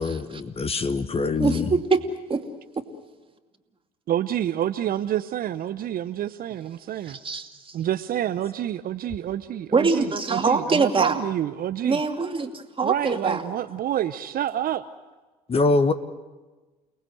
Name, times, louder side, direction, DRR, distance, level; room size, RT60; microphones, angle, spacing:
voice 1, 0.0-1.6 15.5-15.9, left 3 dB, 30° left, 11 dB, 1.5 m, -23 dB
voice 2, 1.4-2.0 2.3-2.4 7.0-7.7 9.7-11.2 11.8-13.4, right 4 dB, 25° right, 5 dB, 2.6 m, -24 dB
voice 3, 4.1-7.2 7.7-12.0 12.8-14.8, right 11 dB, 45° right, 11 dB, 0.8 m, -28 dB
29.5 x 19.0 x 7.8 m, 1.2 s
hypercardioid pair, 65°, 20 cm